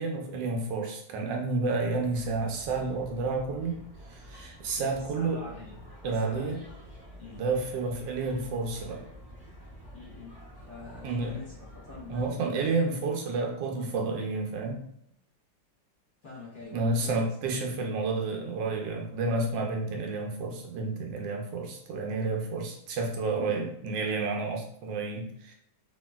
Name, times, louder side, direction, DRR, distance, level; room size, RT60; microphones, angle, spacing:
voice 1, 0.0-3.8 4.1-5.4 6.0-6.6 7.4-9.0 11.0-11.4 12.1-14.8 16.7-25.5, right 3 dB, 75° right, 2 dB, 1.2 m, -30 dB
sound 1, 2.0-12.3, equal, 20° left, 0.7 m, -48 dB
voice 2, 4.8-5.8 6.2-6.6 7.2-7.4 9.9-12.6 16.2-17.2 23.4-23.8, left 3 dB, 45° left, -7 dB, 1.0 m, -45 dB
3.0 x 2.7 x 2.2 m, 0.72 s
omnidirectional pair, 2.1 m